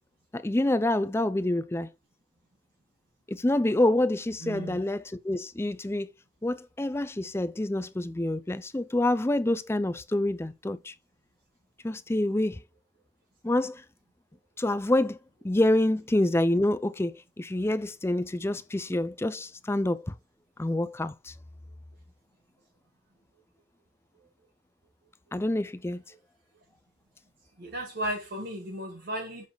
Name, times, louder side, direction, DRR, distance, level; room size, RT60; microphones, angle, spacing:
voice 1, 0.3-1.9 3.3-6.1 6.4-10.9 11.8-12.6 13.4-13.8 14.6-15.2 15.4-20.1 20.6-21.3 25.3-26.0, left 1 dB, 10° left, 0.4 m, -27 dB
voice 2, 4.4-4.8 27.6-29.5, right 1 dB, 50° right, 1.3 m, -35 dB
7.3 x 3.9 x 4.6 m
head